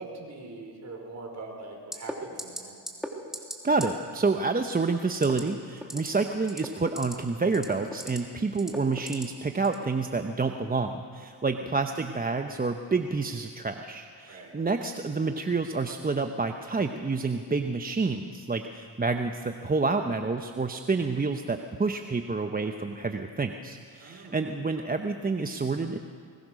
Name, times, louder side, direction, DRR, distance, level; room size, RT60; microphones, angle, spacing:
voice 1, 0.0-2.7 11.4-11.7 14.3-14.5 24.0-24.4, right 2 dB, 40° right, 1 dB, 5.3 m, -42 dB
sound 1, 1.9-2.1 2.4-2.6 2.9-3.1 3.3-3.6 3.8-3.9 5.1-5.4 5.8-6.1 6.4-7.1 7.5-8.2 8.6-9.2 9.6-9.8, equal, ahead, 3.1 m, -36 dB
voice 2, 3.6-26.0, right 4 dB, 20° right, 5 dB, 1.0 m, -28 dB
21.5 x 21.0 x 6.5 m, 2.2 s
cardioid pair, 85°, 44 cm